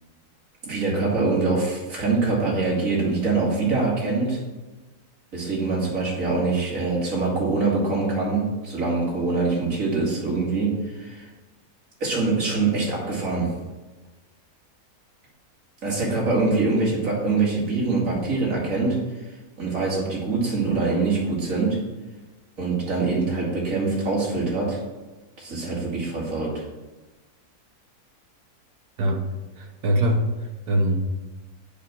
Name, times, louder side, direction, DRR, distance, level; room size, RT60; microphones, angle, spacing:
voice 1, 0.6-4.4 5.3-11.3 12.0-13.5 15.8-19.0 19.3-21.8 22.6-24.8 25.4-26.6, right 3 dB, 55° right, -4 dB, 2.7 m, -24 dB
voice 2, 29.6-31.0, right 1 dB, 75° right, 3 dB, 1.5 m, -23 dB
7.0 x 5.7 x 5.9 m, 1.2 s
omnidirectional pair, 1.7 m